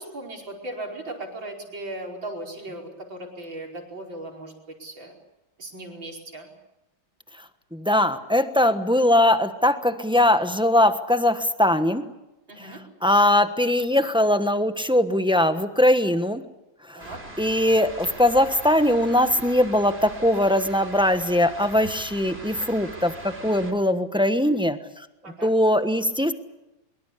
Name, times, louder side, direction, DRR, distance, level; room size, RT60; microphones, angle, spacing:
voice 1, 0.0-4.5 4.8-5.1 5.6-6.5 12.5-12.8 16.9-17.2 25.2-25.5, right 1 dB, 80° right, 0 dB, 5.8 m, -37 dB
voice 2, 7.3-12.0 12.6-16.4 16.8-26.3, left 1 dB, 5° right, 9 dB, 0.9 m, -21 dB
sound 1, 17.0-23.7, right 1 dB, 30° right, 3.5 m, -41 dB
23.5 x 23.0 x 8.4 m, 0.94 s
omnidirectional pair, 2.1 m